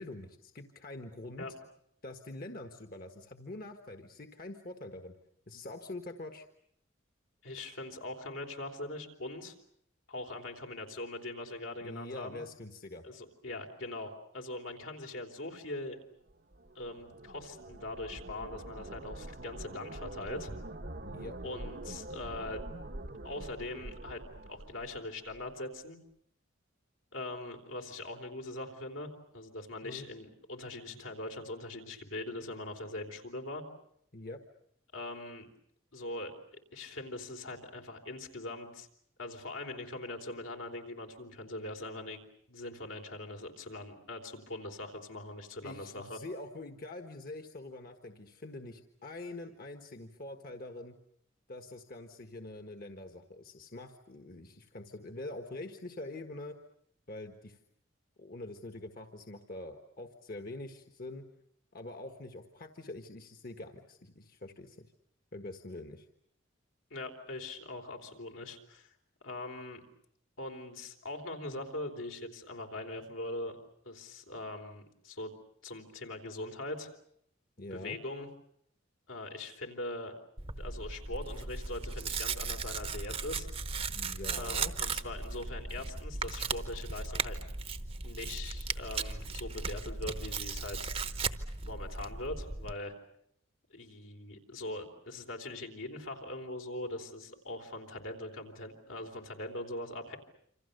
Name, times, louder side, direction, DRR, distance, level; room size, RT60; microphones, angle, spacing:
voice 1, 0.0-1.5 2.0-5.2 5.5-6.4 11.8-13.0 21.0-21.4 29.8-30.1 34.1-34.4 45.6-51.0 51.5-56.5 57.1-57.6 58.2-61.3 61.7-64.9 65.3-66.1 77.6-78.0 83.9-84.7, left 2 dB, 45° left, 5 dB, 1.5 m, -45 dB
voice 2, 7.4-9.6 10.1-12.4 13.0-16.0 16.8-20.5 21.4-22.7 23.2-26.0 27.1-33.6 34.9-35.5 35.9-36.3 36.7-38.9 39.2-46.2 66.9-68.9 69.2-69.8 70.4-73.6 73.9-75.3 75.6-76.9 77.7-78.3 79.1-80.1 80.6-83.5 84.3-87.4 88.0-90.9 91.6-92.9 93.7-100.2, left 2 dB, 80° left, 2 dB, 3.7 m, -41 dB
sound 1, 16.3-25.5, right 1 dB, 50° right, 1.1 m, -45 dB
Tearing, 80.4-92.7, right 4 dB, 30° right, 1.0 m, -37 dB
27.5 x 26.5 x 6.7 m, 0.70 s
head